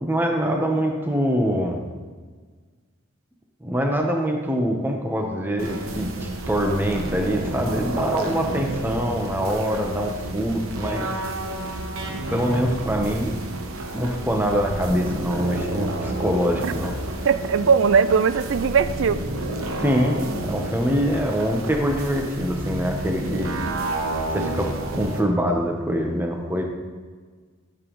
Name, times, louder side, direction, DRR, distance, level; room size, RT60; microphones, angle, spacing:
voice 1, 0.0-1.8 3.6-11.1 12.3-13.4 13.9-16.9 19.8-23.6 24.3-26.6, equal, 10° right, 2 dB, 0.9 m, -24 dB
sound 1, 5.6-25.2, right 2 dB, 90° right, 1.0 m, -30 dB
voice 2, 17.2-19.2, right 6 dB, 70° right, 13 dB, 0.4 m, -19 dB
12.5 x 7.2 x 3.1 m, 1.5 s
head